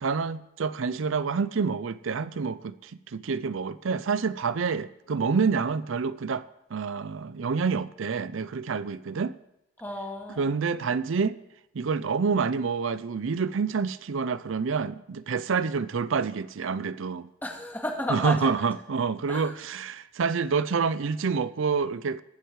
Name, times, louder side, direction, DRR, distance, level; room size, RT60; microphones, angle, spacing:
voice 1, 0.0-6.4 6.7-9.3 10.4-11.4 11.7-17.3 18.1-22.2, right 5 dB, 75° right, 0.5 m, -28 dB
voice 2, 9.8-10.6 15.5-15.8 17.4-18.5 19.3-19.6, left 1 dB, 10° left, 2.1 m, -34 dB
22.0 x 7.9 x 4.8 m
head